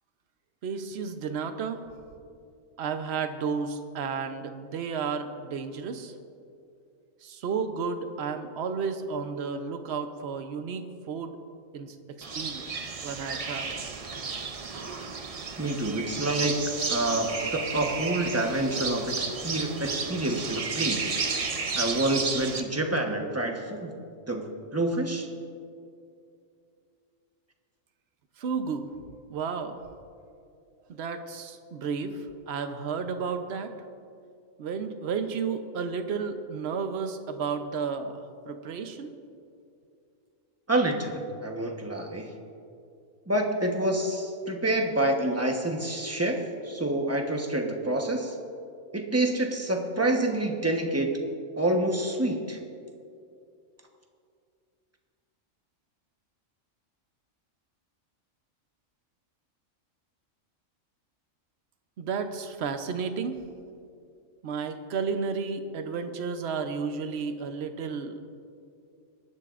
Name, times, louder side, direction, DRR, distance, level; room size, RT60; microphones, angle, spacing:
voice 1, 0.6-1.8 2.8-6.1 7.2-11.4 11.7-12.7 13.0-13.8 28.4-28.9 29.3-29.8 30.9-33.7 34.6-39.1 62.0-63.4 64.4-68.4, right 5 dB, 60° right, 8 dB, 1.0 m, -32 dB
sound 1, 12.2-22.6, right 4 dB, 40° right, 0.5 m, -33 dB
voice 2, 15.6-16.6 16.9-21.2 21.7-24.4 24.7-25.3 40.7-42.3 43.3-48.4 48.9-51.1 51.6-52.6, right 1 dB, 15° right, 2 dB, 1.0 m, -27 dB
22.5 x 10.5 x 2.5 m, 2.5 s
omnidirectional pair, 1.3 m